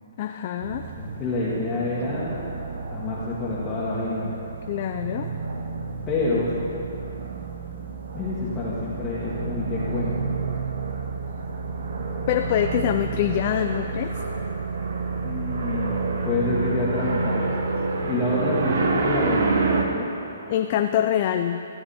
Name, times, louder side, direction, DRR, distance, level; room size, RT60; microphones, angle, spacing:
voice 1, 0.2-0.9 4.7-5.3 12.3-14.1 20.5-21.7, left 10 dB, 40° left, 6 dB, 0.4 m, -24 dB
sound 1, 0.6-19.8, right 4 dB, 65° right, 1.2 m, -29 dB
voice 2, 1.0-2.4 2.9-4.4 6.1-6.5 8.1-10.4 15.2-16.0 16.2-17.4 18.1-20.1, left 2 dB, 20° left, -10 dB, 1.8 m, -27 dB
15.0 x 7.9 x 4.3 m, 2.9 s
hypercardioid pair, 145°, 0 cm